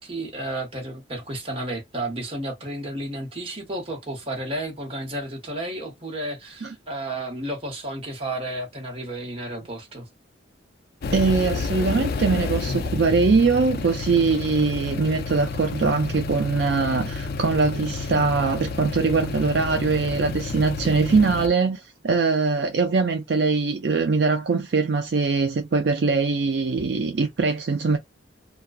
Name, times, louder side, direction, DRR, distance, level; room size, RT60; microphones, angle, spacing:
voice 1, 0.0-10.1, right 1 dB, 30° right, 0.9 m, -32 dB
sound 1, 11.0-21.5, left 4 dB, 55° left, 0.4 m, -30 dB
voice 2, 11.1-28.0, right 4 dB, 65° right, 0.4 m, -22 dB
2.4 x 2.3 x 2.4 m
head